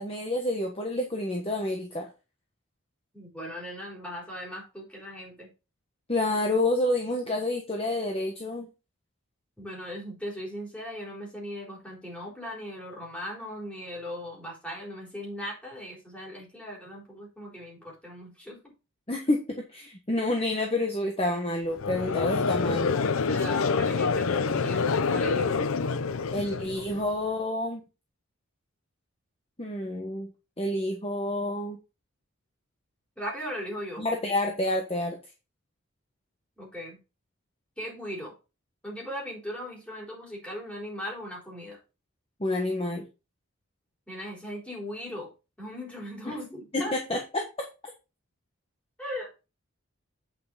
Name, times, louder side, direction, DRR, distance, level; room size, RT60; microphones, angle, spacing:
voice 1, 0.0-2.1 6.1-8.7 19.1-23.0 26.3-27.8 29.6-30.3 30.6-31.8 34.0-35.2 42.4-43.0 46.7-47.4, left 1 dB, 25° left, 1 dB, 1.2 m, -28 dB
voice 2, 3.1-5.5 9.6-18.6 22.6-23.0 23.3-25.6 33.2-34.1 36.6-37.0 37.8-38.3 38.8-41.8 44.1-45.3 45.6-46.9 49.0-49.4, equal, 5° left, -3 dB, 4.1 m, -38 dB
Conversation / Crowd, 21.8-27.1, left 4 dB, 70° left, 0.6 m, -27 dB
8.9 x 5.7 x 4.0 m, 0.29 s
head